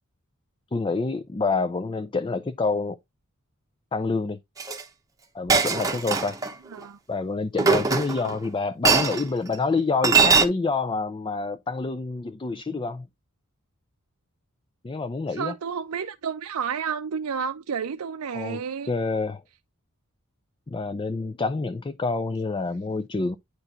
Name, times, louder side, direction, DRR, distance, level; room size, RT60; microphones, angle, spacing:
voice 1, 0.7-3.0 3.9-4.4 5.3-6.4 7.1-13.1 14.8-15.5 18.3-18.6 18.9-19.4 20.7-23.4, left 3 dB, 20° left, 0.4 m, -27 dB
Chink clink, 4.6-4.8 5.5-6.5 7.6-8.4 8.8-9.2 10.0-10.5, right 4 dB, 15° right, 0.9 m, -20 dB
voice 2, 15.3-18.9, right 6 dB, 90° right, 0.5 m, -31 dB
9.8 x 4.6 x 2.4 m
head